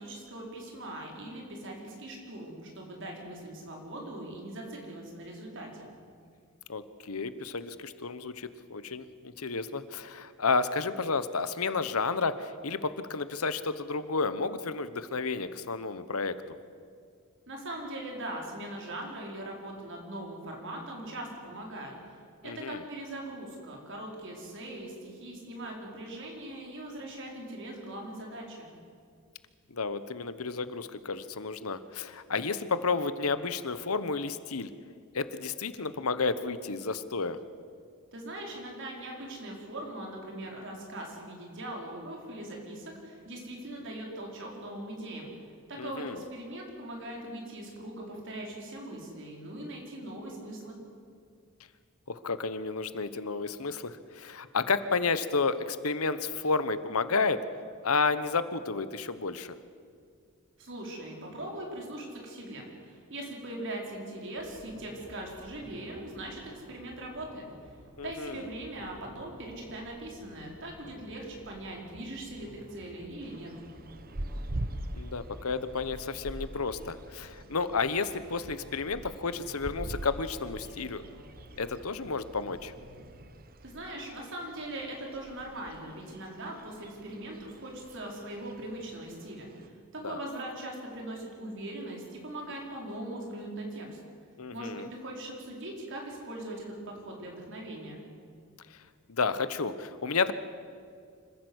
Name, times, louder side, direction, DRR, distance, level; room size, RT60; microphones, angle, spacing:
voice 1, 0.0-5.9 17.5-28.7 38.1-45.3 45.7-50.7 60.6-67.4 68.0-73.5 83.6-89.7 90.0-93.9 94.5-98.0, right 1 dB, 60° right, 0 dB, 4.9 m, -40 dB
voice 2, 6.7-16.4 22.4-22.8 29.7-34.7 35.1-37.4 45.8-46.2 52.1-57.4 57.8-59.5 68.0-68.5 74.9-81.0 81.6-82.7 90.0-90.2 94.4-94.9 99.1-100.3, left 4 dB, 85° left, 13 dB, 1.1 m, -31 dB
sound 1, 64.4-83.3, equal, 85° right, 5.8 m, -53 dB
sound 2, 73.2-89.7, right 1 dB, 45° right, 1.0 m, -44 dB
26.0 x 15.0 x 8.1 m, 2.2 s
head